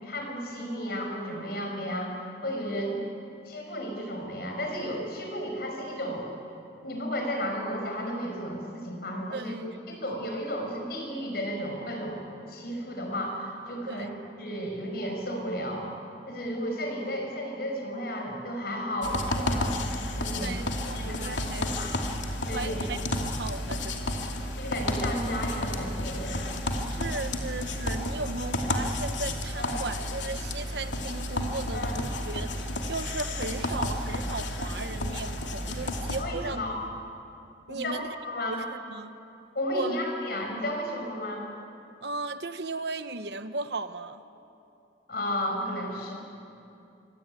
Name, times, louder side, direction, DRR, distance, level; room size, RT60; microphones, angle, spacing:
voice 1, 0.0-2.2 2.4-3.0 3.4-6.3 6.8-9.6 9.9-14.1 14.4-15.9 16.3-19.8 20.2-20.7 20.9-22.0 22.5-22.8 24.6-26.5 29.6-29.9 31.7-31.9 36.2-36.8 37.7-38.6 39.5-41.5 45.1-46.1, equal, 55° left, 2 dB, 6.0 m, -33 dB
voice 2, 9.3-9.7 13.9-14.1 20.4-21.7 22.5-24.2 26.8-36.6 37.7-38.1 38.4-39.2 39.7-40.0 42.0-44.2, right 3 dB, 65° right, 10 dB, 1.1 m, -36 dB
sound 1, 19.0-36.2, left 1 dB, 80° left, 2.7 m, -31 dB
25.0 x 25.0 x 9.0 m, 2.7 s
head